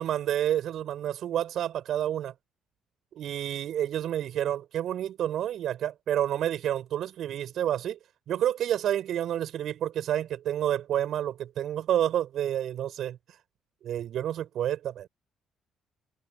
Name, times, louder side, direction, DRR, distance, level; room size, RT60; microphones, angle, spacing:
voice 1, 0.0-2.3 3.1-8.0 8.3-13.2 13.8-15.1, right 11 dB, 60° right, 7.8 m, -29 dB
hypercardioid pair, 50°, 0 cm